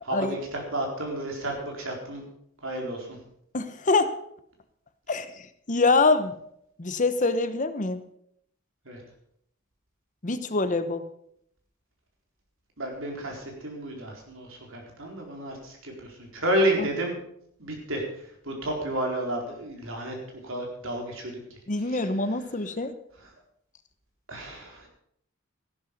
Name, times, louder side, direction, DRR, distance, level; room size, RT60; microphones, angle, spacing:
voice 1, 0.0-2.2 2.6-3.2 8.8-9.0 12.8-17.2 17.6-18.0 18.4-20.2 20.4-21.4 21.9-22.1 24.3-24.9, right 1 dB, 65° right, 0 dB, 4.3 m, -31 dB
voice 2, 3.5-4.1 5.1-5.3 5.7-6.4 6.8-8.1 10.2-11.1 16.8-16.9 21.7-22.9, left 3 dB, 40° left, 11 dB, 1.0 m, -25 dB
14.5 x 11.5 x 5.4 m, 0.71 s
head